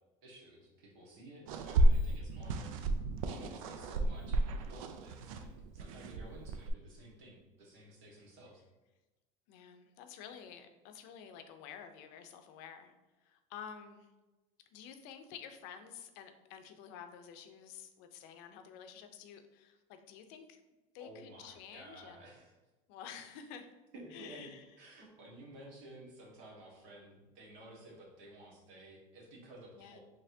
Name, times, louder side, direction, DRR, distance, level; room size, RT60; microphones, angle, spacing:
voice 1, 0.2-2.7 3.3-8.6 21.0-22.5 23.9-24.5 24.8-30.0, right 1 dB, 75° right, -3 dB, 1.4 m, -54 dB
sound 1, 1.5-6.7, right 1 dB, 90° right, 0.4 m, -32 dB
voice 2, 9.5-12.9 13.3-14.1 14.7-20.6 20.9-22.3 22.9-23.7 24.1-24.6 29.8-30.0, left 8 dB, 65° left, 7 dB, 0.5 m, -50 dB
4.2 x 3.2 x 2.7 m, 1.1 s
supercardioid pair, 115°, 17 cm